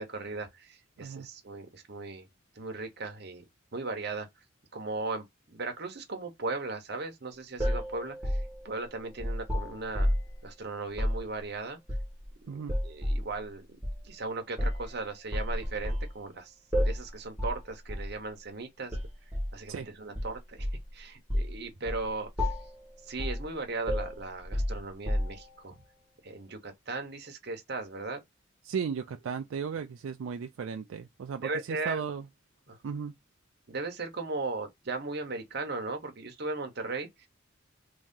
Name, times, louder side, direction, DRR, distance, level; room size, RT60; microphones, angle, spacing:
voice 1, 0.0-2.3 2.6-3.4 3.7-4.3 4.7-10.1 10.4-11.8 12.4-13.8 14.0-16.5 16.8-19.0 19.5-22.5 23.0-25.8 26.2-28.2 29.7-29.8 31.4-32.0 32.7-32.8 33.7-37.3, right 3 dB, 50° right, 0.9 m, -37 dB
sound 1, 7.6-10.4 10.9-11.2 11.9-12.3 12.7-13.3 13.8-14.0 14.6-14.9 15.3-16.1 16.7-17.1 17.4-17.6 17.9-18.1 18.9-19.5 20.1-20.9 21.3-21.6 21.9-22.1 22.4-22.8 23.2-23.5 23.9-25.5, equal, 5° right, 1.4 m, -30 dB
voice 2, 28.7-32.2 32.8-33.1, right 6 dB, 75° right, 0.4 m, -35 dB
3.0 x 2.7 x 3.6 m
head